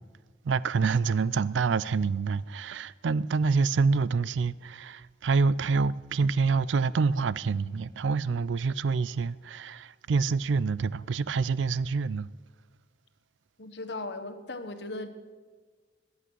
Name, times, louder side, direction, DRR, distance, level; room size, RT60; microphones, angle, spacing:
voice 1, 0.4-12.3, right 4 dB, 85° right, 0.4 m, -27 dB
voice 2, 13.6-15.1, left 2 dB, 65° left, 1.2 m, -37 dB
21.0 x 8.3 x 6.3 m
head